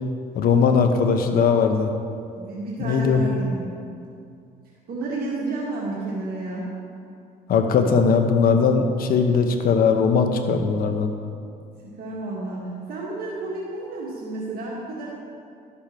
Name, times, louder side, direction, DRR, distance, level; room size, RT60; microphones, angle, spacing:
voice 1, 0.3-1.9 2.8-3.2 7.5-11.1, left 5 dB, 60° left, 6 dB, 1.0 m, -19 dB
voice 2, 2.4-3.6 4.0-4.1 4.9-6.7 12.0-15.1, right 2 dB, 65° right, -5 dB, 1.8 m, -31 dB
11.5 x 7.2 x 4.4 m, 2.4 s
cardioid pair, 110°, 17 cm